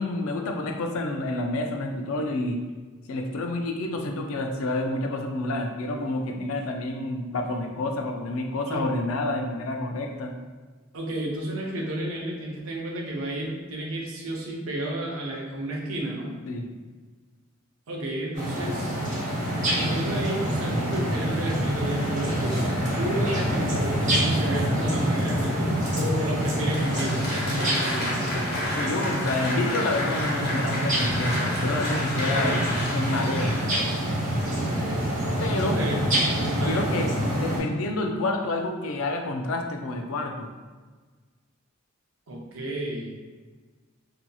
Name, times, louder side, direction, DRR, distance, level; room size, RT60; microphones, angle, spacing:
voice 1, 0.0-2.6 3.1-10.3 16.5-16.7 28.7-33.6 35.4-35.8 36.7-40.5, left 2 dB, 80° left, 3 dB, 0.4 m, -29 dB
voice 2, 10.9-16.3 17.9-19.0 19.8-28.2 32.4-32.7 34.5-35.1 35.5-36.0 36.3-37.1 42.3-43.1, right 1 dB, 80° right, -2 dB, 0.6 m, -32 dB
sound 1, 18.3-37.6, equal, 40° right, 0.8 m, -26 dB
Applause, 26.4-34.5, left 1 dB, 50° left, 0.8 m, -31 dB
2.7 x 2.6 x 2.3 m, 1.4 s
head